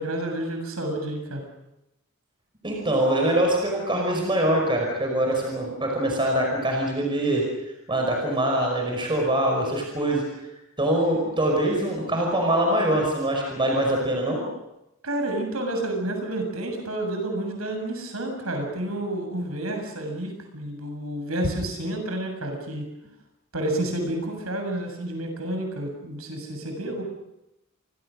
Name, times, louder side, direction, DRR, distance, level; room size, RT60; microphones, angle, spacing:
voice 1, 0.0-1.4 15.0-22.8 23.5-27.0, right 1 dB, 85° right, 4 dB, 7.5 m, -30 dB
voice 2, 2.6-7.4 7.9-10.2 10.8-14.4, right 1 dB, 25° right, 0 dB, 5.4 m, -23 dB
28.5 x 24.0 x 6.5 m, 0.90 s
head